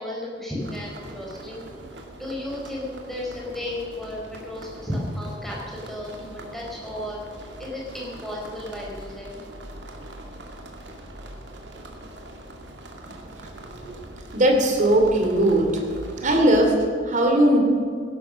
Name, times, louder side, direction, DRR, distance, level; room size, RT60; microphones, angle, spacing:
voice 1, 0.0-1.6 1.9-9.4, left 1 dB, ahead, -4 dB, 4.4 m, -34 dB
sound 1, 0.6-16.7, right 1 dB, 65° right, 2.4 m, -42 dB
voice 2, 13.7-14.0 14.3-15.8 16.2-17.6, right 1 dB, 40° right, 2 dB, 3.0 m, -19 dB
16.5 x 12.0 x 6.4 m, 2.4 s
head